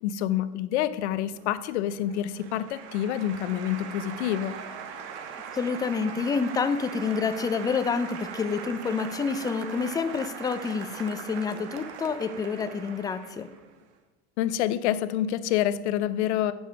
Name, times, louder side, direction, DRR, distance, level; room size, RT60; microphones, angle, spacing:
voice 1, 0.0-4.6 14.4-16.5, left 11 dB, 80° left, 15 dB, 0.6 m, -27 dB
Applause, 1.3-13.8, right 7 dB, 80° right, 1.2 m, -41 dB
voice 2, 5.3-13.5, left 5 dB, 10° left, 11 dB, 0.4 m, -28 dB
8.2 x 6.2 x 5.1 m, 1.1 s
supercardioid pair, 120°, 34 cm